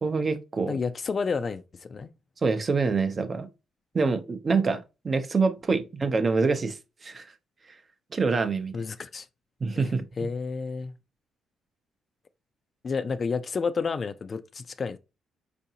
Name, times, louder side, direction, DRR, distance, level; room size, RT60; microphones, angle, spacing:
voice 1, 0.0-0.8 2.4-3.5 3.9-7.3 8.1-8.7 9.6-10.0, right 4 dB, 35° right, 0.6 m, -26 dB
voice 2, 0.7-2.1 8.7-9.3 9.8-9.9 10.2-11.0 12.8-15.0, left 5 dB, 40° left, 0.3 m, -30 dB
4.7 x 2.6 x 2.7 m
cardioid pair, 90°, 0 cm